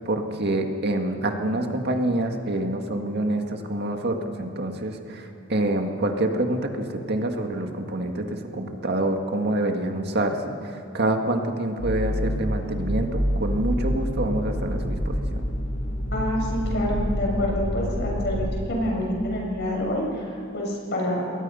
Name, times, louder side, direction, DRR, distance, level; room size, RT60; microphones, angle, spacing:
voice 1, 0.0-15.4, right 1 dB, 55° right, 4 dB, 1.9 m, -26 dB
sound 1, 11.8-18.6, equal, 75° left, 6.7 m, -27 dB
voice 2, 16.1-21.2, left 1 dB, 60° left, -2 dB, 6.9 m, -27 dB
29.0 x 21.0 x 5.7 m, 2.5 s
head